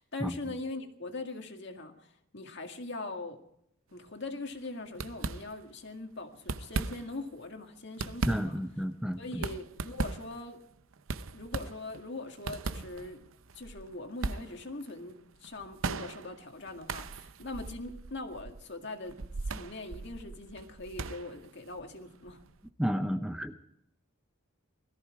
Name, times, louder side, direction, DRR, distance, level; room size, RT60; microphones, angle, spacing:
voice 1, 0.0-3.4 3.9-8.6 9.2-10.6 11.3-13.3 13.5-19.2 19.5-22.4, left 2 dB, 55° left, 5 dB, 2.1 m, -41 dB
sound 1, 4.0-4.3 4.5-4.7 4.9-5.9 6.3-7.3 7.7-22.6, right 3 dB, 70° right, 0.7 m, -39 dB
voice 2, 8.3-9.4 22.8-23.5, equal, 5° right, 7 dB, 0.7 m, -31 dB
21.0 x 14.5 x 4.8 m, 0.75 s
head